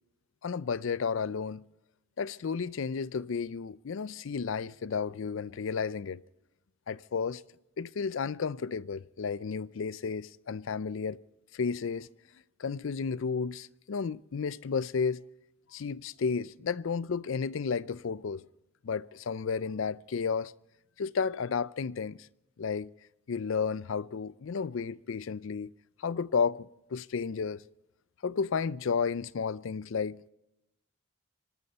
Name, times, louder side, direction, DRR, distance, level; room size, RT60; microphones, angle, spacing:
voice 1, 0.4-1.7 2.2-6.2 6.9-7.4 7.8-11.2 11.5-12.1 12.6-15.2 15.7-18.4 18.8-20.5 21.0-22.3 22.6-22.9 23.3-25.7 26.0-27.6 28.2-30.3, left 5 dB, 70° left, 0.4 m, -32 dB
25.0 x 12.0 x 4.2 m
head